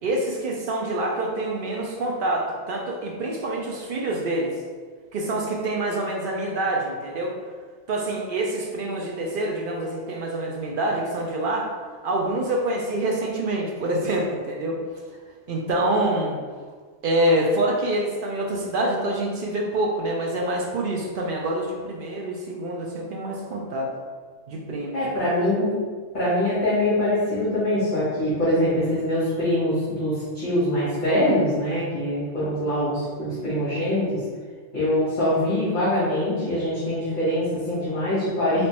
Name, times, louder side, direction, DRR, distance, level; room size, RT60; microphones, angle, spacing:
voice 1, 0.0-4.6 5.1-7.4 7.9-11.7 12.0-14.8 15.5-16.4 17.0-23.9 24.5-25.1, right 1 dB, 60° right, -1 dB, 0.5 m, -26 dB
voice 2, 24.9-25.7 26.1-34.1 34.7-38.7, left 1 dB, 40° left, -11 dB, 1.2 m, -23 dB
3.3 x 3.0 x 2.9 m, 1.5 s
omnidirectional pair, 1.3 m